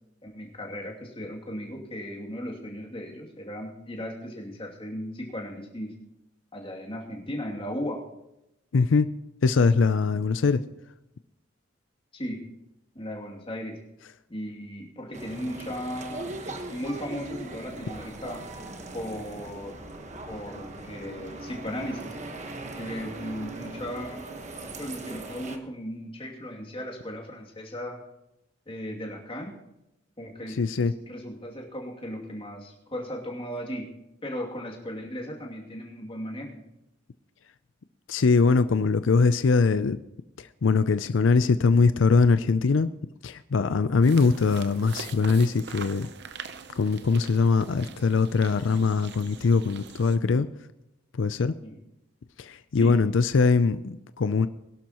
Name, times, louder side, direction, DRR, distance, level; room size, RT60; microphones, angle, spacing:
voice 1, 0.2-5.9 6.5-8.0 12.1-12.4 12.9-13.8 14.3-18.4 18.9-19.9 20.3-22.2 22.8-24.2 24.6-28.0 28.7-29.6 30.2-30.6 31.1-33.9 34.2-36.6 51.6-51.8 52.8-52.9, equal, 30° left, -1 dB, 2.6 m, -36 dB
voice 2, 8.7-9.1 9.4-10.6 30.6-30.9 38.1-40.0 40.4-42.9 43.2-46.1 46.8-50.5 51.1-51.5 52.4-54.5, left 4 dB, 90° left, 12 dB, 0.5 m, -22 dB
sound 1, 15.1-25.6, right 2 dB, 40° right, 1.3 m, -40 dB
sound 2, 44.0-50.2, right 6 dB, 60° right, 0.7 m, -43 dB
21.5 x 11.5 x 3.0 m, 0.87 s
head